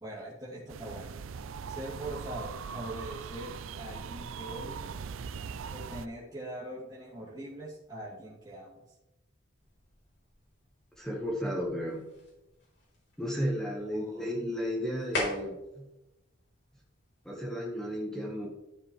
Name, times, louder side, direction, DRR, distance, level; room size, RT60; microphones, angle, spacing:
voice 1, 0.0-1.1 1.7-4.9 5.7-9.0 13.9-14.3, right 1 dB, 20° right, -9 dB, 2.9 m, -42 dB
sound 1, 0.7-6.1, right 6 dB, 80° right, 0.4 m, -40 dB
sound 2, 9.5-17.5, left 2 dB, 55° left, 3.4 m, -43 dB
voice 2, 11.0-12.0 13.2-15.9 17.2-18.5, equal, 5° left, -2 dB, 1.4 m, -33 dB
13.0 x 7.3 x 3.3 m, 0.98 s
head